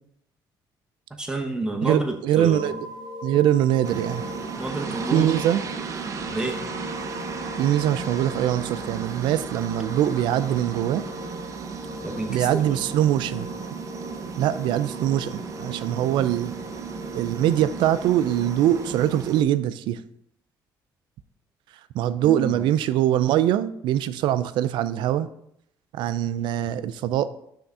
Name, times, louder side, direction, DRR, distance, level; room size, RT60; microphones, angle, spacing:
voice 1, 1.2-2.8 4.6-5.3 6.3-6.6 12.0-12.6 22.2-22.7, right 2 dB, 10° right, 3 dB, 0.8 m, -29 dB
voice 2, 1.8-2.7 3.2-4.2 5.1-5.6 7.6-11.0 12.3-13.5 14.4-16.5 17.1-20.0 21.9-25.3 25.9-27.3, right 12 dB, 80° right, 14 dB, 0.4 m, -23 dB
sound 1, 2.4-18.9, left 1 dB, 75° left, 1.4 m, -40 dB
sound 2, 3.8-19.4, right 5 dB, 40° right, 0.6 m, -35 dB
5.8 x 3.6 x 5.4 m, 0.73 s
cardioid pair, 110°, 8 cm